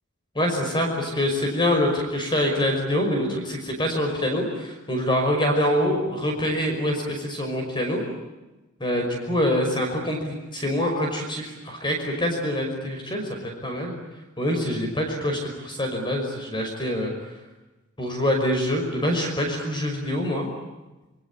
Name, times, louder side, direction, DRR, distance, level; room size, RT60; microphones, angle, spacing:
voice 1, 0.4-8.0 8.8-14.0 14.4-17.4 18.0-20.5, left 1 dB, 20° left, 3 dB, 5.5 m, -25 dB
27.5 x 25.0 x 8.6 m, 1.1 s
head